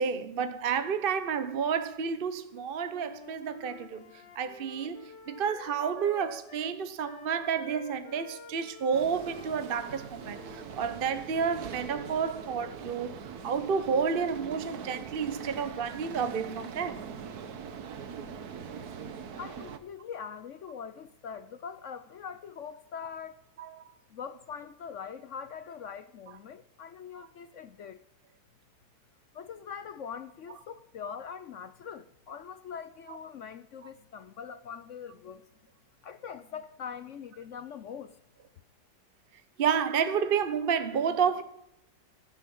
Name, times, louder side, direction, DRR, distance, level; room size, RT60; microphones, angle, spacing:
voice 1, 0.0-13.1 13.4-17.0 23.6-23.8 39.6-41.4, right 6 dB, 40° right, 0.8 m, -30 dB
Wind instrument woodwind instrument, 2.8-11.2, left 5 dB, 85° left, 2.1 m, -50 dB
sound 1, 8.9-19.8, right 6 dB, 65° right, 1.6 m, -42 dB
voice 2, 19.4-23.5 24.1-28.0 29.3-35.5 36.0-38.2, left 7 dB, 60° left, 0.8 m, -42 dB
16.0 x 11.5 x 5.4 m
omnidirectional pair, 1.9 m